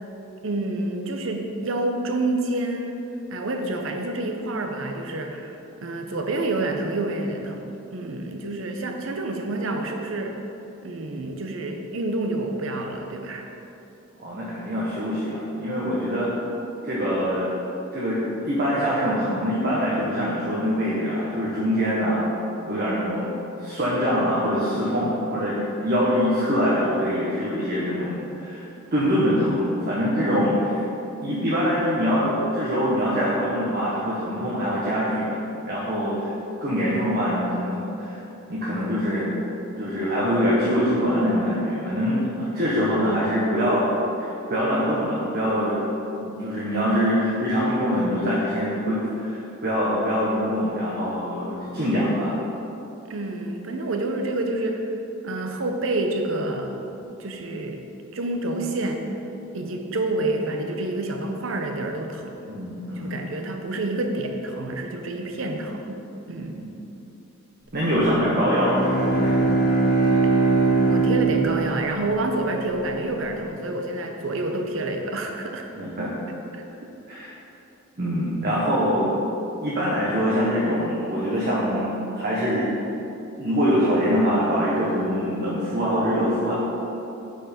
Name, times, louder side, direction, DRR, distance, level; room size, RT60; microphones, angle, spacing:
voice 1, 0.4-3.0 3.3-7.6 7.9-10.4 10.8-13.5 53.1-54.9 55.2-56.9 57.2-57.8 58.1-59.0 59.5-62.5 62.9-66.0 66.3-66.6 70.9-75.7 76.5-76.6, right 2 dB, 70° right, 4 dB, 0.7 m, -28 dB
voice 2, 14.2-16.3 16.8-17.5 17.9-22.2 22.7-23.3 23.6-30.8 31.2-36.3 36.6-38.2 38.5-39.3 39.8-43.9 44.2-45.8 46.1-52.3 62.5-63.1 66.6-66.7 67.7-69.5 75.7-76.1 77.1-77.3 78.0-79.1 79.6-82.7 83.4-86.5, equal, 50° right, -8 dB, 1.1 m, -24 dB
Bowed string instrument, 68.2-72.7, right 3 dB, 55° left, 1.6 m, -22 dB
6.3 x 5.2 x 5.1 m, 2.9 s
head